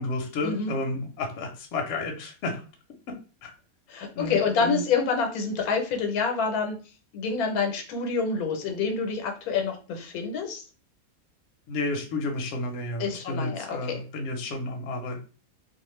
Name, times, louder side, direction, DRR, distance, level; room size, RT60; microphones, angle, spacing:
voice 1, 0.0-2.6 3.4-3.5 4.2-4.8 11.7-15.2, left 2 dB, 60° left, 2 dB, 0.9 m, -31 dB
voice 2, 3.9-6.8 7.1-10.6 13.0-14.0, left 5 dB, 85° left, 4 dB, 1.1 m, -27 dB
2.4 x 2.4 x 3.0 m, 0.36 s
omnidirectional pair, 1.5 m